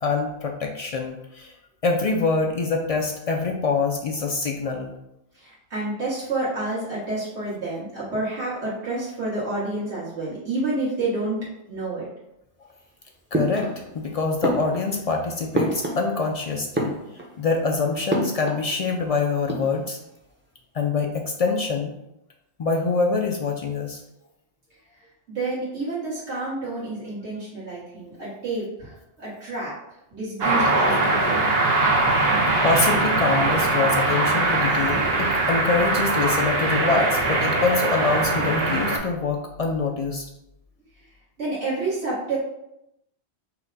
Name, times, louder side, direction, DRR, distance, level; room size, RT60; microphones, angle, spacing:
voice 1, 0.0-1.5 1.8-4.9 13.3-17.0 17.4-20.0 20.7-21.9 22.6-24.0 32.6-40.2, left 4 dB, 60° left, 1 dB, 0.3 m, -25 dB
voice 2, 5.3-11.4 11.7-12.1 25.3-29.7 30.1-31.4 41.4-42.4, right 2 dB, 80° right, -9 dB, 1.7 m, -29 dB
sound 1, 13.3-14.0 14.4-16.3 16.6-17.5 18.1-18.7 19.0-19.1 19.3-20.0, right 1 dB, 15° right, 0.5 m, -28 dB
sound 2, 30.4-39.0, right 2 dB, 60° right, 1.0 m, -21 dB
5.6 x 2.1 x 4.0 m, 0.84 s
omnidirectional pair, 1.2 m